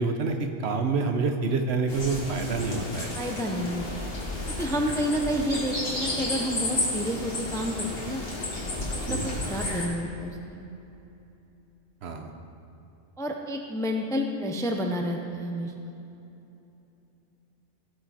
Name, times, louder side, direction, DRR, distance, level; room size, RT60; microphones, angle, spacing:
voice 1, 0.0-3.1 4.9-5.0 9.1-9.4 12.0-12.3, right 4 dB, 65° right, 5 dB, 1.0 m, -27 dB
sound 1, 1.9-9.9, left 2 dB, 55° left, 2.0 m, -32 dB
voice 2, 3.1-4.1 4.6-8.2 8.9-9.2 9.5-10.7 13.2-15.9, equal, 5° left, 3 dB, 0.5 m, -30 dB
17.0 x 5.9 x 4.2 m, 2.9 s
omnidirectional pair, 1.2 m